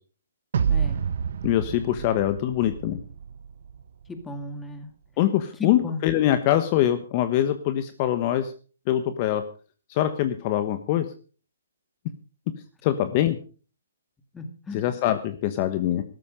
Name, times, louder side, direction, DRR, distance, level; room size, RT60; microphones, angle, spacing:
sound 1, 0.5-3.8, right 7 dB, 65° right, 1.0 m, -28 dB
voice 1, 0.7-1.1 4.1-4.9 5.6-6.0 14.3-14.9, left 3 dB, 10° left, 7 dB, 2.0 m, -35 dB
voice 2, 1.4-3.0 5.2-8.5 8.9-9.4 9.9-11.1 12.8-13.4 14.7-16.0, left 12 dB, 35° left, 10 dB, 1.2 m, -23 dB
13.5 x 13.0 x 5.1 m, 0.38 s
hypercardioid pair, 155°, 0 cm